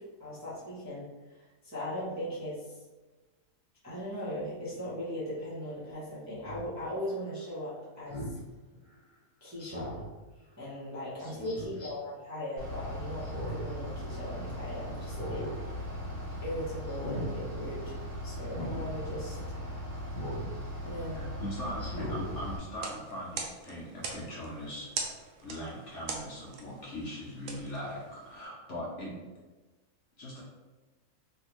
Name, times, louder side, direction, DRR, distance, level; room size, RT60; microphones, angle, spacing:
voice 1, 0.2-1.1 1.6-2.7 3.8-8.3 9.4-10.0 10.6-15.5 16.4-18.0 18.2-19.4 20.8-21.3 29.1-29.2, equal, 15° right, -10 dB, 0.6 m, -38 dB
Speech synthesizer, 6.4-6.6 8.1-8.4 9.6-10.1 11.4-11.9 13.2-13.7 14.1-14.2 15.0-15.6 15.9-16.2 16.9-17.3 18.5-18.8 20.1-20.5 21.0-21.1 21.8-22.3 22.7-22.8, equal, 40° left, 0.4 m, -39 dB
Bus / Idling, 12.6-22.6, equal, 45° right, 1.3 m, -39 dB
voice 2, 21.1-25.2 25.4-29.1 30.2-30.4, equal, 60° left, -5 dB, 0.9 m, -40 dB
sound 1, 22.6-28.5, right 4 dB, 70° right, 0.9 m, -42 dB
3.3 x 2.6 x 3.0 m, 1.2 s
omnidirectional pair, 1.6 m